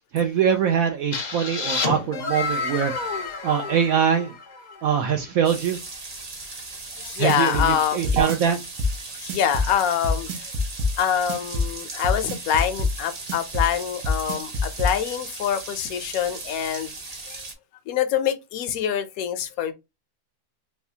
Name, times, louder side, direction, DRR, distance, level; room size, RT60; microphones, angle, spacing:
voice 1, 0.1-2.9 3.4-4.3 4.8-5.8 7.2-8.6, right 8 dB, 70° right, 0.9 m, -23 dB
sound 1, 1.1-4.9, left 4 dB, 50° left, 0.5 m, -30 dB
sound 2, 5.4-17.5, right 3 dB, 55° right, 0.4 m, -38 dB
voice 2, 7.0-8.0 9.2-10.3 11.0-16.9 17.3-17.4 17.9-19.7, left 9 dB, 70° left, 1.0 m, -25 dB
sound 3, 7.3-14.9, left 2 dB, 90° right, 1.4 m, -25 dB
4.2 x 2.3 x 2.7 m
omnidirectional pair, 1.7 m